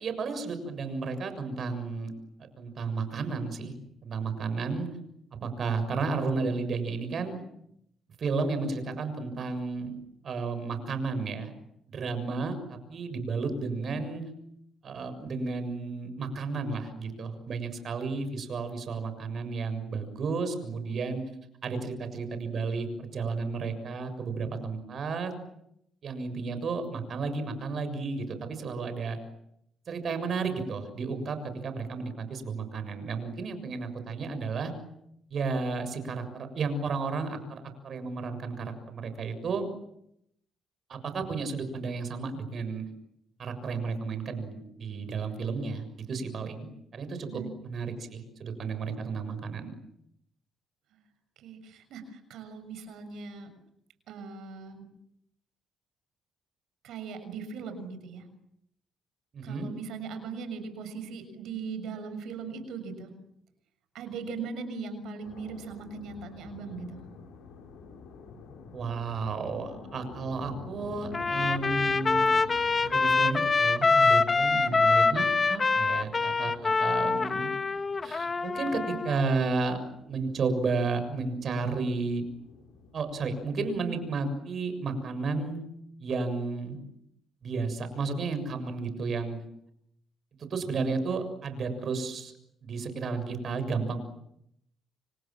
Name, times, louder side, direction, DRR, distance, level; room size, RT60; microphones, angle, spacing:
voice 1, 0.0-2.1 2.6-3.7 4.0-4.9 5.4-7.4 8.2-10.0 10.2-11.5 11.9-14.2 14.8-21.2 21.6-25.3 26.0-29.2 29.9-34.7 35.3-39.7 40.9-42.8 43.4-46.7 46.9-49.7 59.3-59.7 68.7-72.3 72.8-77.5 78.0-79.8 80.1-82.2 82.9-85.6 86.0-86.8 87.4-89.4 90.4-92.3 92.6-94.0, right 4 dB, 55° right, 9 dB, 6.9 m, -32 dB
voice 2, 51.4-53.5 54.1-54.9 56.8-58.3 59.4-63.1 63.9-67.0 74.5-74.8 91.1-91.2, right 5 dB, 80° right, 9 dB, 6.6 m, -39 dB
sound 1, 65.2-84.1, left 4 dB, 90° left, 6.8 m, -49 dB
Trumpet, 71.1-79.3, left 4 dB, 30° left, 1.6 m, -25 dB
30.0 x 27.0 x 7.5 m, 0.77 s
cardioid pair, 90°, 0 cm